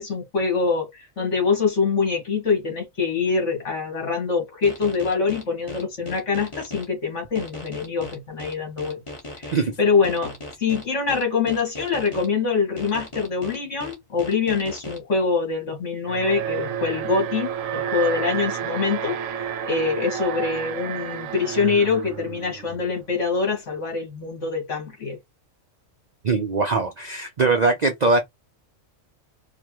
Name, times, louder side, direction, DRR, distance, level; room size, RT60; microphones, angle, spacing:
voice 1, 0.0-9.0 9.4-10.3 10.6-25.2, left 5 dB, 60° left, 2.2 m, -24 dB
sound 1, 4.6-6.8 7.3-9.6 10.0-12.3 12.8-15.0, left 1 dB, 25° left, 1.2 m, -37 dB
Alarm, 16.1-23.2, right 9 dB, 75° right, 1.1 m, -30 dB
voice 2, 26.2-28.2, right 3 dB, 50° right, 0.5 m, -21 dB
4.9 x 2.4 x 3.0 m
omnidirectional pair, 1.4 m